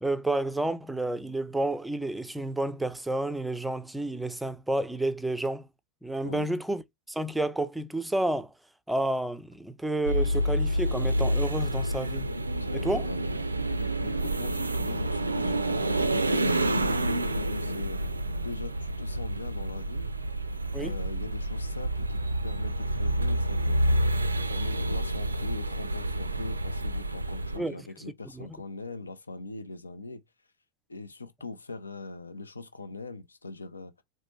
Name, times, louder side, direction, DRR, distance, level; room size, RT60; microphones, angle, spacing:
voice 1, 0.0-5.7 6.0-6.8 7.1-8.5 8.9-12.3 12.7-13.1 20.7-20.9 27.6-27.9 28.3-28.5, right 1 dB, 5° right, 0.4 m, -30 dB
sound 1, 10.0-27.6, right 1 dB, 80° right, 0.4 m, -28 dB
voice 2, 12.6-13.4 14.0-18.0 18.4-20.1 20.8-24.0 24.5-30.2 30.9-34.0, left 3 dB, 75° left, 0.5 m, -41 dB
4.0 x 2.2 x 3.1 m
figure-of-eight pair, 90°, 0 cm